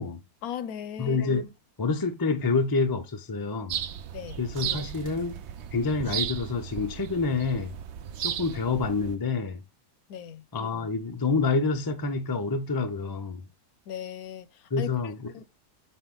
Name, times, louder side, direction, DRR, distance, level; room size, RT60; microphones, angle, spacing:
voice 1, 0.4-1.2 4.1-4.4 10.1-10.5 13.9-15.4, left 9 dB, 70° left, 1.0 m, -38 dB
voice 2, 1.0-1.5 1.8-3.8 4.4-5.4 5.7-7.7 8.2-9.6 10.5-13.4 14.7-15.4, left 4 dB, 35° left, 0.3 m, -27 dB
sound 1, 3.7-9.1, right 9 dB, 65° right, 0.7 m, -35 dB
6.4 x 4.4 x 3.8 m
omnidirectional pair, 1.7 m